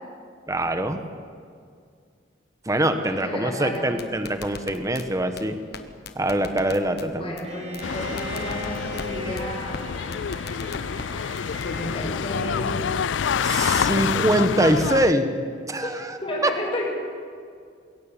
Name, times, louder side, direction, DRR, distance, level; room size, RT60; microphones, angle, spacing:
voice 1, 0.5-1.0 2.6-5.6 6.1-7.4 13.4-15.3 15.7-16.5, right 1 dB, 20° right, 8 dB, 1.2 m, -23 dB
voice 2, 2.9-3.8 7.1-9.9 11.6-12.9 15.8-16.9, left 1 dB, 30° left, -2 dB, 5.8 m, -32 dB
sound 1, 3.7-5.0 5.4-5.5 5.7-5.8 6.1-7.1 7.4-7.5 7.7-7.8 8.2-9.1 9.4-9.5 9.7-9.8 10.1-11.1 11.4-11.7, left 4 dB, 60° left, 1.4 m, -37 dB
Bowed string instrument, 7.4-12.1, equal, 35° right, 3.4 m, -38 dB
sound 2, 7.8-15.1, left 7 dB, 90° left, 0.4 m, -27 dB
22.5 x 17.5 x 7.4 m, 2.2 s
head